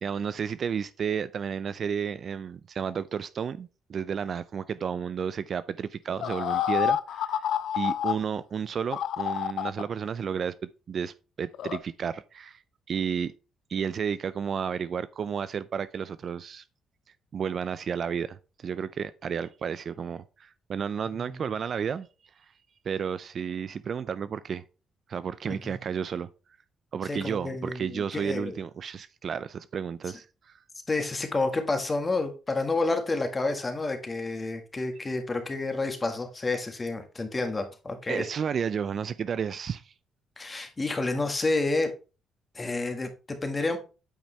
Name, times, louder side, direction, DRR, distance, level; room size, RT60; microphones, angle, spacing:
voice 1, 0.0-7.3 7.7-12.6 12.9-13.3 13.7-16.6 17.3-22.1 22.8-24.6 25.1-26.3 26.9-30.6 38.1-39.9, right 7 dB, 55° right, 0.5 m, -32 dB
sound 1, 6.2-8.1 8.9-9.8 11.5-11.8, left 10 dB, 75° left, 0.5 m, -28 dB
voice 2, 25.4-25.8 27.0-28.6 30.9-38.3 40.4-41.9 42.5-43.8, left 3 dB, 25° left, 1.6 m, -29 dB
8.7 x 5.2 x 3.3 m
cardioid pair, 90°, 0 cm